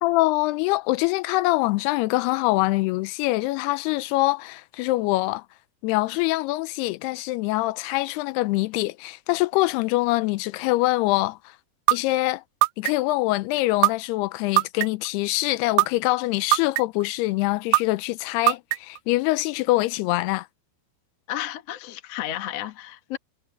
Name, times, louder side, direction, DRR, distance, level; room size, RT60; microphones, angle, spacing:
voice 1, 0.0-5.4 5.8-11.4 11.9-12.4 12.8-20.5, left 20 dB, 90° left, 2.7 m, -24 dB
sound 1, 11.9-12.0 12.6-13.1 13.8-13.9 14.6-15.1 15.8-15.9 16.5-17.0 17.7-17.8 18.5-19.0, right 19 dB, 85° right, 2.6 m, -18 dB
voice 2, 21.3-23.2, left 12 dB, 55° left, 2.0 m, -32 dB
omnidirectional pair, 4.5 m